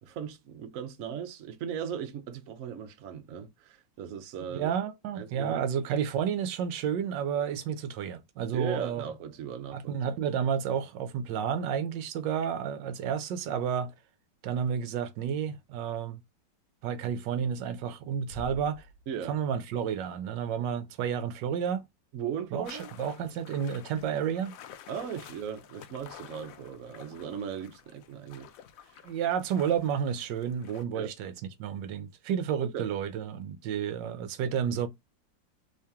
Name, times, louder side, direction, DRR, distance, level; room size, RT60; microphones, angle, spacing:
voice 1, 0.0-4.7 5.1-5.6 8.5-10.0 19.1-19.4 22.1-22.9 24.9-28.5 28.8-29.0 30.9-31.1 32.6-32.9, right 8 dB, 60° right, 0.9 m, -38 dB
voice 2, 4.5-9.1 9.7-13.9 14.4-16.2 16.8-18.9 19.3-21.9 22.5-24.5 29.0-31.3 31.6-34.9, right 8 dB, 75° right, 1.2 m, -31 dB
Bass drum, 18.3-19.7, right 1 dB, 45° left, 1.3 m, -46 dB
sound 1, 22.6-30.8, left 9 dB, 80° left, 0.7 m, -51 dB
3.2 x 2.8 x 3.4 m
omnidirectional pair, 2.0 m